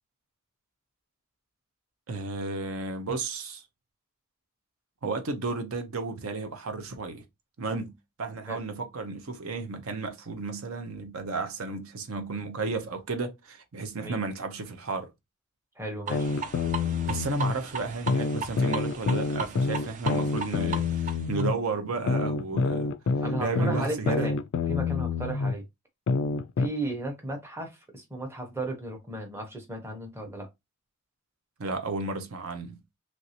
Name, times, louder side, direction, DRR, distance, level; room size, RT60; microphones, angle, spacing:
voice 1, 2.1-3.6 5.0-7.2 7.6-15.1 17.0-24.3 31.6-32.8, right 3 dB, 70° right, 0.6 m, -33 dB
voice 2, 15.8-16.3 23.2-24.4 24.7-25.6 26.6-30.5, right 1 dB, 10° right, 0.8 m, -35 dB
sound 1, 16.1-17.5 18.1-21.5 22.1-25.5 26.1-26.7, left 4 dB, 60° left, 0.3 m, -27 dB
sound 2, 16.1-21.4, right 5 dB, 35° right, 0.3 m, -37 dB
3.1 x 2.6 x 2.8 m
head